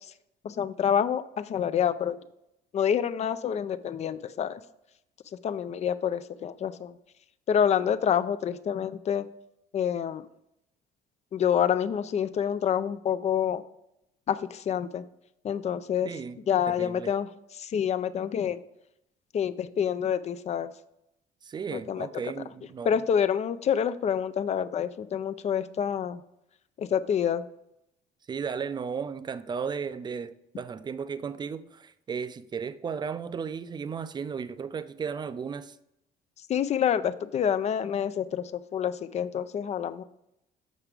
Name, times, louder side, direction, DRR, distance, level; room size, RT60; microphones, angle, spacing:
voice 1, 0.4-2.2 2.7-4.6 5.4-6.9 7.5-9.3 9.7-10.2 11.3-13.6 14.3-15.0 15.4-16.1 16.5-18.6 19.3-20.7 21.7-22.1 22.8-26.2 26.8-27.5 36.5-40.0, left 8 dB, 40° left, 0.4 m, -27 dB
voice 2, 16.0-16.4 16.7-17.1 21.4-23.0 28.3-35.8, right 6 dB, 25° right, 0.4 m, -35 dB
7.3 x 5.8 x 3.4 m
cardioid pair, 110°, 17 cm